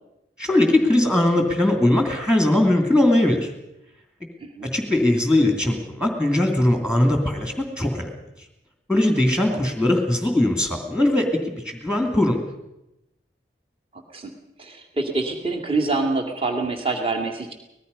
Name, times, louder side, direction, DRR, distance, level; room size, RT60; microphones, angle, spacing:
voice 1, 0.4-3.5 4.2-4.3 4.7-8.1 8.9-12.4, left 1 dB, 5° right, 4 dB, 2.8 m, -20 dB
voice 2, 13.9-14.3 14.6-17.5, right 3 dB, 30° right, 2 dB, 2.5 m, -26 dB
24.5 x 19.5 x 5.5 m, 0.89 s
head